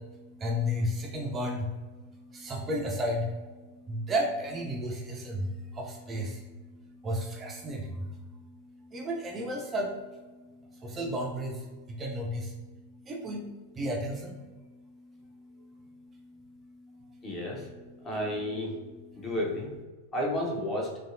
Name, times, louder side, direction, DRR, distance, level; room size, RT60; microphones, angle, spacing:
voice 1, 0.0-17.3 19.1-19.2, equal, 20° right, 1 dB, 0.3 m, -35 dB
voice 2, 17.2-17.7 18.0-18.7 19.1-19.7 20.1-21.0, left 1 dB, 25° left, -1 dB, 0.7 m, -31 dB
3.0 x 2.7 x 2.5 m, 1.3 s
figure-of-eight pair, 90°, 0 cm